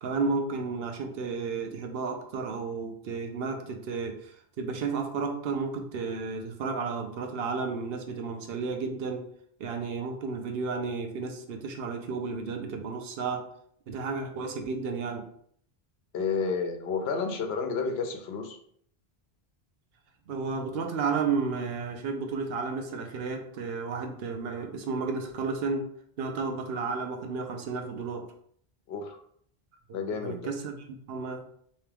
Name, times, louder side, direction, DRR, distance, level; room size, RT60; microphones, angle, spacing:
voice 1, 0.0-9.3 9.6-13.5 13.9-15.2 20.3-25.9 26.2-28.3 29.9-30.7 31.1-31.4, right 4 dB, 75° right, 4 dB, 0.8 m, -32 dB
voice 2, 16.1-18.6 28.9-29.2 29.9-30.5, left 5 dB, 85° left, 5 dB, 0.9 m, -31 dB
3.4 x 2.9 x 3.4 m, 0.63 s
omnidirectional pair, 1.0 m